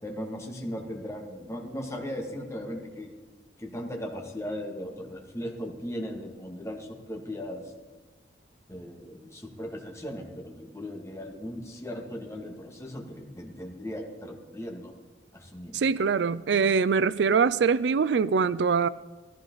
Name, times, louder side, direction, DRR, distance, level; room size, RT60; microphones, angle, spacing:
voice 1, 0.0-3.1 3.6-7.7 8.7-14.9 15.3-15.8, equal, 15° left, 2.2 m, -37 dB
voice 2, 15.7-18.9, right 5 dB, 70° right, 0.4 m, -23 dB
17.0 x 14.5 x 4.0 m
head